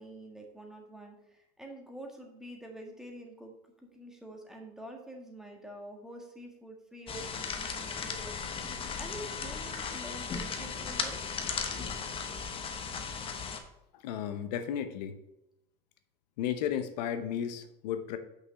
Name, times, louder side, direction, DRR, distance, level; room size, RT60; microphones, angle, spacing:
voice 1, 0.0-8.4 9.0-11.2, right 1 dB, ahead, 1 dB, 1.7 m, -47 dB
sound 1, 7.1-13.6, left 5 dB, 25° left, 1.1 m, -36 dB
voice 2, 13.9-15.1 16.4-18.2, left 9 dB, 85° left, 9 dB, 1.0 m, -34 dB
6.1 x 5.6 x 7.0 m, 0.89 s
supercardioid pair, 130°, 21 cm